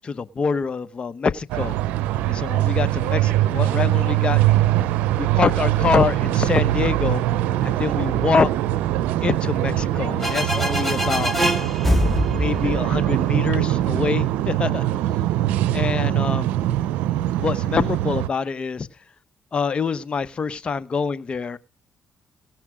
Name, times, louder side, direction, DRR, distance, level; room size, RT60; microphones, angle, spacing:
voice 1, 0.0-1.7 2.3-4.4 5.2-7.2 7.6-8.5 9.2-11.3 12.3-14.9 15.7-16.5 17.4-18.9 19.5-21.6, left 5 dB, 45° left, 1.0 m, -25 dB
sound 1, 1.5-18.3, right 14 dB, 80° right, 0.6 m, -22 dB
sound 2, 10.2-13.8, equal, 10° left, 2.4 m, -24 dB
18.0 x 6.1 x 5.1 m
supercardioid pair, 55°, 3 cm